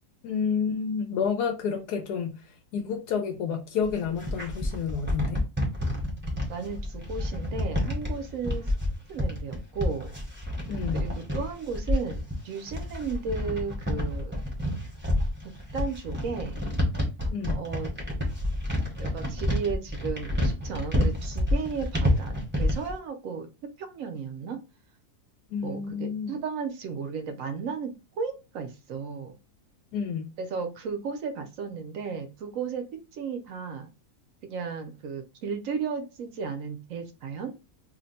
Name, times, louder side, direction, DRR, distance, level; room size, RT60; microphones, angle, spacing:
voice 1, 0.2-2.4 2.7-5.4 10.7-11.0 17.3-17.7 25.5-26.3 29.9-30.3, left 6 dB, 85° left, 1.1 m, -30 dB
sound 1, 3.8-22.9, left 1 dB, 10° right, 0.7 m, -29 dB
voice 2, 6.5-8.7 9.1-10.1 10.9-14.4 15.7-16.6 17.5-17.9 19.0-24.6 25.6-27.9 28.2-29.3 30.4-32.8 33.1-33.9 34.4-37.5, right 5 dB, 65° right, 0.9 m, -34 dB
2.8 x 2.1 x 3.9 m
omnidirectional pair, 1.6 m